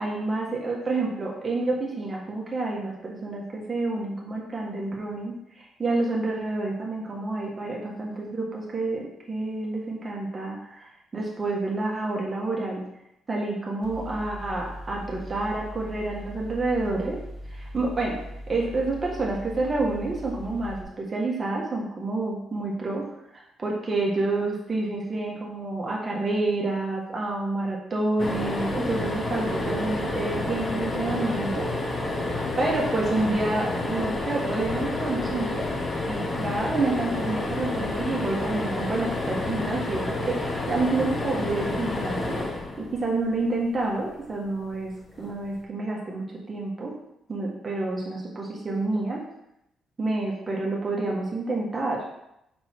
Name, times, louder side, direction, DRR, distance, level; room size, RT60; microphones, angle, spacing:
voice 1, 0.0-12.8 13.3-17.2 17.5-18.2 18.5-23.0 23.3-31.7 32.6-35.7 36.1-42.4 42.8-44.9 45.2-46.9 47.3-49.2 50.0-52.0, right 2 dB, 30° right, -2 dB, 1.6 m, -28 dB
Mechanical fan, 13.8-20.8, equal, 55° left, 1.5 m, -40 dB
sound 1, 28.2-43.5 45.1-45.3 45.6-45.7, left 2 dB, 30° left, 1.2 m, -29 dB
5.6 x 5.3 x 4.6 m, 0.82 s
cardioid pair, 90°, 0 cm